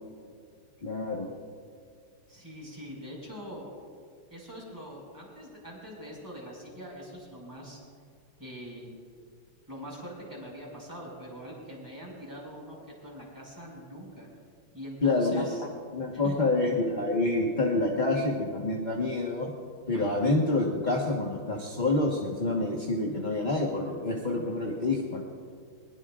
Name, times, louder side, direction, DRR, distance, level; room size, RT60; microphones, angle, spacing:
voice 1, 0.8-1.3 15.0-15.5 15.9-19.5 19.9-25.2, left 2 dB, 25° left, -1 dB, 1.1 m, -27 dB
voice 2, 2.3-3.7 4.3-7.8 8.4-9.0 9.7-12.8 13.0-14.3 14.7-15.6 16.1-16.5 19.9-20.3, equal, 10° right, -4 dB, 5.0 m, -43 dB
22.0 x 21.0 x 2.4 m, 2.2 s
omnidirectional pair, 2.4 m